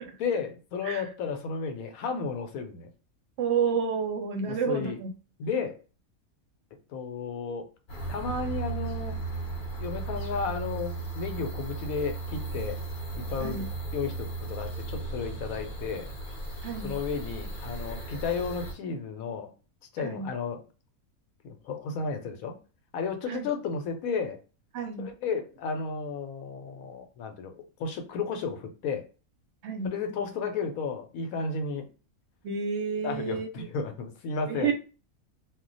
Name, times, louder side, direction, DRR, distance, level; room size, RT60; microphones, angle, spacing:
voice 1, 0.2-2.9 4.4-5.0 5.4-5.8 6.9-7.7 8.1-9.2 9.8-12.8 13.1-13.6 13.9-16.1 16.8-19.5 19.9-20.6 21.4-22.6 22.9-24.4 25.0-29.0 29.8-31.9 33.0-34.7, left 5 dB, 75° left, 6 dB, 1.0 m, -33 dB
voice 2, 3.4-5.1 13.4-13.7 16.6-16.9 20.0-20.3 23.3-23.5 24.7-25.1 29.6-29.9 32.4-33.7 34.5-34.7, right 6 dB, 60° right, 4 dB, 0.8 m, -30 dB
sound 1, 7.9-18.7, right 3 dB, 50° left, 0.6 m, -36 dB
2.3 x 2.1 x 3.8 m, 0.35 s
omnidirectional pair, 1.5 m